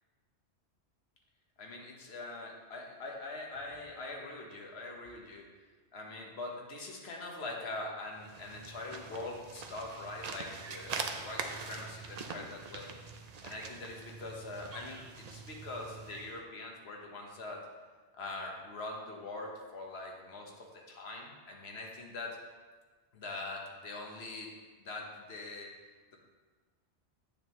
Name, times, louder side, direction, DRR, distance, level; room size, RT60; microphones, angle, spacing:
voice 1, 1.6-5.5 5.9-12.9 13.4-17.7 18.2-22.4 23.1-24.5 24.8-25.7, left 2 dB, 65° left, 0 dB, 1.4 m, -43 dB
Walking on Trail in Spring with Birds, 8.1-16.4, right 4 dB, 50° right, 0.5 m, -43 dB
8.8 x 6.7 x 3.1 m, 1.4 s
omnidirectional pair, 1.2 m